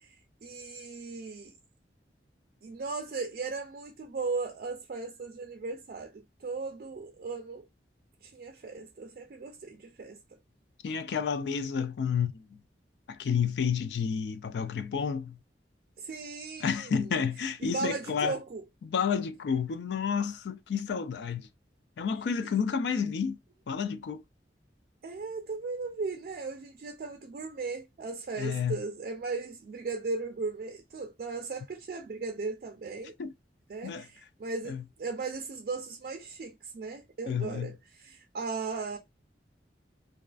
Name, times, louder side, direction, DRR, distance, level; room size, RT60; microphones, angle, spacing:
voice 1, 0.0-1.5 2.6-7.7 8.2-10.2 16.0-17.0 17.6-18.6 22.4-22.5 25.0-33.1 33.7-39.0, right 4 dB, 50° right, 0.3 m, -37 dB
voice 2, 10.8-12.6 13.1-15.4 16.6-18.4 18.8-21.5 22.0-23.4 23.7-24.2 28.4-28.8 33.2-33.3 33.8-34.1 34.6-34.8 37.3-37.7, left 6 dB, 75° left, 0.3 m, -30 dB
2.3 x 2.3 x 2.4 m
head